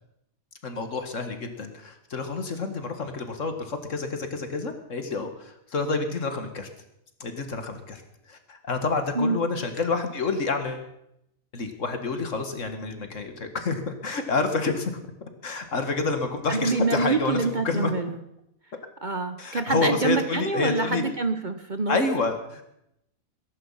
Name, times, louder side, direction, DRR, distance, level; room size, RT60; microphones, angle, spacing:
voice 1, 0.6-6.7 7.2-8.0 8.3-10.9 11.5-14.9 15.4-17.9 19.4-21.1 21.9-22.6, left 3 dB, 60° left, 7 dB, 2.1 m, -28 dB
voice 2, 16.5-18.1 19.0-22.0, right 3 dB, 40° right, 8 dB, 0.9 m, -26 dB
20.5 x 11.0 x 5.7 m, 0.80 s
omnidirectional pair, 1.4 m